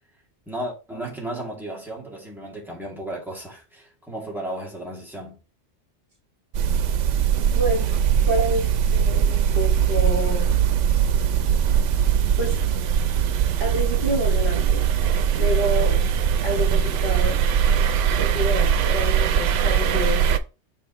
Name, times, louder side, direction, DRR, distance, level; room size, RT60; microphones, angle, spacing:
voice 1, 0.5-5.4, right 1 dB, ahead, 2.5 m, -34 dB
sound 1, 6.5-20.4, right 8 dB, 85° right, 1.0 m, -21 dB
voice 2, 7.5-10.6 12.4-12.6 13.6-14.8 15.3-16.1 16.4-17.4 18.2-20.2, equal, 50° right, 2.2 m, -28 dB
7.2 x 4.9 x 3.1 m
omnidirectional pair, 1.2 m